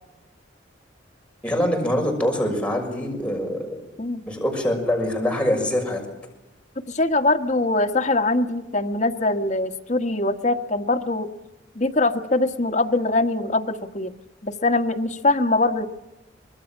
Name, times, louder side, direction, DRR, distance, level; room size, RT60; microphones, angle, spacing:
voice 1, 1.4-3.7 4.3-6.0, left 1 dB, 5° left, 1 dB, 6.2 m, -24 dB
voice 2, 6.9-11.3 11.7-14.1 14.4-15.9, left 2 dB, 40° left, 5 dB, 1.6 m, -22 dB
25.0 x 21.5 x 7.4 m, 0.99 s
head